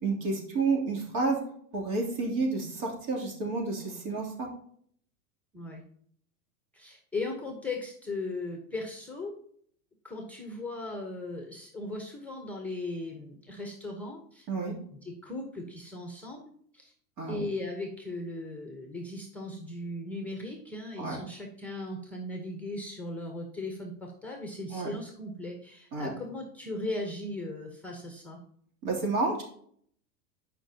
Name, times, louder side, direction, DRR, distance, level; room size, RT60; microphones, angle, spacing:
voice 1, 0.0-1.4 1.7-4.5 14.5-14.7 17.2-17.4 21.0-21.2 24.7-24.9 25.9-26.1 28.8-29.4, right 3 dB, 60° right, -2 dB, 3.0 m, -30 dB
voice 2, 6.7-9.3 10.0-14.5 15.0-16.4 16.7-16.9 17.3-28.4, left 2 dB, 5° left, 2 dB, 0.9 m, -38 dB
11.0 x 5.3 x 2.8 m, 0.62 s
supercardioid pair, 135°, 46 cm